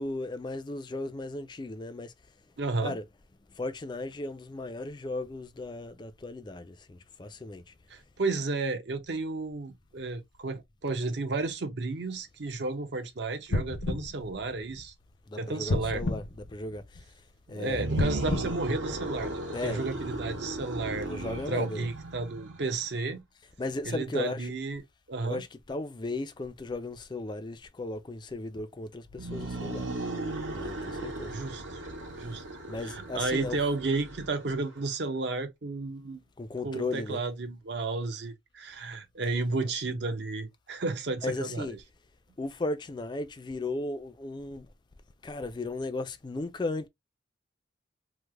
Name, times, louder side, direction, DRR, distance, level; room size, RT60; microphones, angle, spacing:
voice 1, 0.0-2.1 2.8-3.0 3.6-7.6 15.3-16.2 16.5-17.0 17.5-17.9 19.5-19.8 21.0-21.9 23.6-24.5 25.2-29.9 30.6-31.3 32.7-33.6 36.4-37.2 41.2-41.7 42.4-44.7 45.2-46.9, left 2 dB, 25° left, 0.3 m, -36 dB
voice 2, 2.6-3.0 7.9-14.9 15.4-16.0 17.5-23.2 23.8-24.8 25.1-25.4 31.3-31.6 32.2-32.4 32.8-36.2 36.6-41.8, right 3 dB, 60° right, 0.6 m, -32 dB
sound 1, 13.5-15.1 15.7-17.2 17.9-19.6 20.1-20.2, left 2 dB, 80° left, 0.7 m, -33 dB
sound 2, 17.6-22.8 29.1-34.7, right 2 dB, 75° right, 1.3 m, -36 dB
3.2 x 2.1 x 3.3 m
head